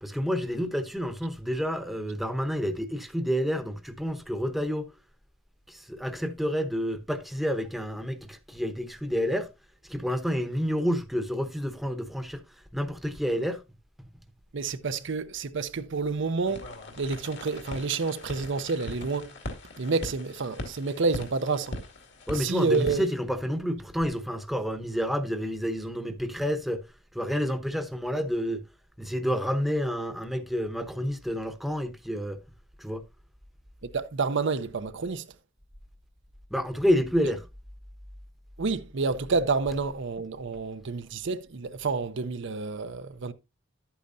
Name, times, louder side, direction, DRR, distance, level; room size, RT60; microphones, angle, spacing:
voice 1, 0.0-4.9 5.7-9.5 9.9-12.4 12.7-13.6 22.3-26.8 27.1-28.6 29.0-32.4 32.8-33.0 36.5-37.4, equal, ahead, 0.9 m, -29 dB
voice 2, 14.5-16.6 17.0-19.3 19.8-21.8 22.3-23.1 33.9-35.2 38.6-43.3, right 4 dB, 65° right, 0.7 m, -29 dB
sound 1, 16.5-23.0, left 1 dB, 60° left, 2.2 m, -40 dB
11.5 x 8.7 x 2.6 m
head